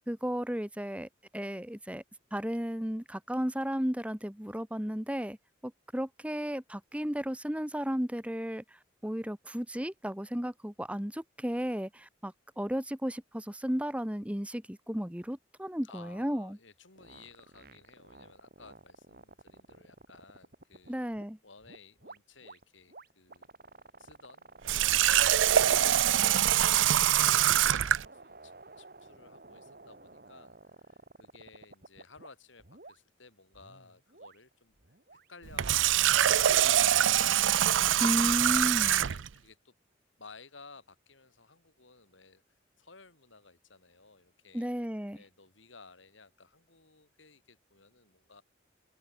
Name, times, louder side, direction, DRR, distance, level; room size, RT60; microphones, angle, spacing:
voice 1, 0.1-2.0 2.3-5.4 5.6-16.6 20.9-21.4 38.0-39.0 44.5-45.2, equal, 5° right, 1.3 m, -34 dB
voice 2, 15.8-21.0 21.4-23.5 24.0-27.0 27.3-34.7 35.3-37.1 37.4-38.0 38.5-39.7 40.2-44.7 45.1-48.4, left 4 dB, 85° left, 4.9 m, -56 dB
sound 1, 17.0-21.2 21.6-32.3 32.6-33.0 33.5-35.8, right 3 dB, 50° right, 2.8 m, -53 dB
Water tap faucet, 24.6-28.0 35.4-39.3, right 11 dB, 85° right, 0.5 m, -24 dB
open air
head